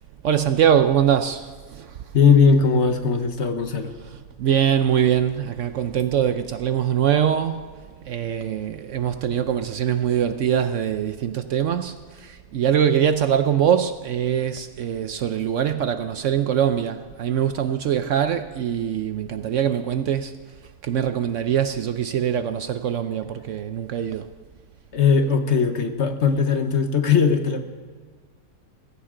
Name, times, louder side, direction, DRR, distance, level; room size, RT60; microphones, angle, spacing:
voice 1, 0.2-1.9 4.4-7.7 8.1-20.3 20.8-24.3, right 9 dB, 65° right, 0.8 m, -23 dB
voice 2, 2.1-3.9 24.9-27.6, left 5 dB, 50° left, 1.2 m, -19 dB
19.0 x 16.0 x 3.8 m
omnidirectional pair, 1.6 m